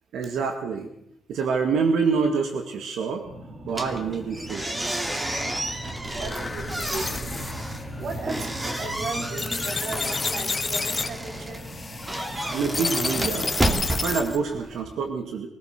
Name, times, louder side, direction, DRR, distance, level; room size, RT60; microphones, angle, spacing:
voice 1, 0.1-0.9 1.3-3.2 3.7-4.7 12.5-13.5 13.9-15.5, right 5 dB, 85° right, 5 dB, 2.2 m, -26 dB
sound 1, 3.2-13.2, right 1 dB, 45° right, 2.2 m, -39 dB
sound 2, 3.7-14.8, right 1 dB, 15° right, 2.6 m, -32 dB
voice 2, 6.2-7.5 8.0-11.7 13.8-13.9, right 4 dB, 60° right, 5 dB, 4.1 m, -36 dB
sound 3, 6.3-14.4, left 4 dB, 25° left, 1.6 m, -31 dB
24.0 x 17.5 x 6.7 m, 0.74 s
cardioid pair, 130°, 0 cm